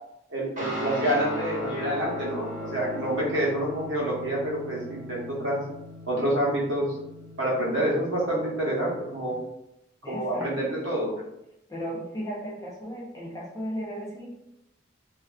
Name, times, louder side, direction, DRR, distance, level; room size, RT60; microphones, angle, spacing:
voice 1, 0.3-5.6 6.1-6.9 7.4-9.4 10.1-11.1, right 1 dB, 65° right, -5 dB, 0.8 m, -27 dB
Guitar, 0.6-9.3, left 1 dB, 40° right, 1.0 m, -38 dB
voice 2, 10.0-10.5 11.7-14.3, equal, 15° left, -4 dB, 0.4 m, -35 dB
2.4 x 2.2 x 2.2 m, 0.84 s
head